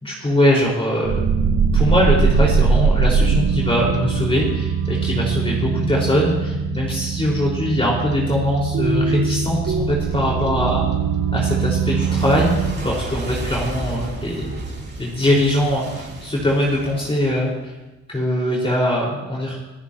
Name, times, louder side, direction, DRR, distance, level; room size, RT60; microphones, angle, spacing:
voice 1, 0.0-1.1 1.7-10.8 11.3-14.6 15.0-17.7 18.1-19.6, left 1 dB, 20° left, -4 dB, 5.3 m, -21 dB
sound 1, 1.0-12.7, right 5 dB, 65° right, 2.7 m, -21 dB
Clock, 2.3-5.3 5.6-8.6 8.9-17.7, right 2 dB, 35° right, 6.0 m, -32 dB
27.0 x 15.0 x 3.1 m, 1.1 s
cardioid pair, 90°, 30 cm